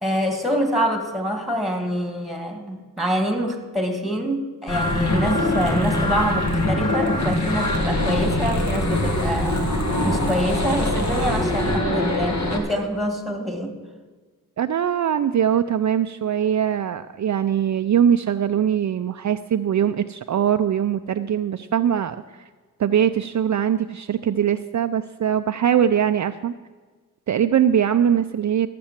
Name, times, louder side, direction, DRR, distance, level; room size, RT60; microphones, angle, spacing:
voice 1, 0.0-13.7, equal, ahead, 4 dB, 2.3 m, -26 dB
sound 1, 4.7-12.6, left 1 dB, 50° left, 2.1 m, -23 dB
voice 2, 14.6-22.5 22.8-26.5 27.3-28.7, right 9 dB, 55° right, 9 dB, 0.5 m, -21 dB
13.5 x 7.6 x 7.3 m, 1.4 s
cardioid pair, 75°, 35 cm